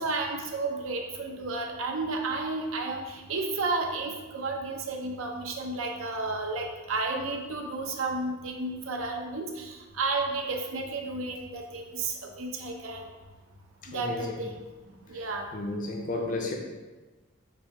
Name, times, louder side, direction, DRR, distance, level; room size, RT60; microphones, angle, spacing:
voice 1, 0.0-13.1 13.9-14.6 15.1-15.5, right 3 dB, 85° right, 2 dB, 0.7 m, -32 dB
voice 2, 13.8-14.4 15.1-15.2 15.5-16.6, left 2 dB, 40° left, 1 dB, 0.6 m, -33 dB
4.0 x 2.7 x 4.8 m, 1.2 s
head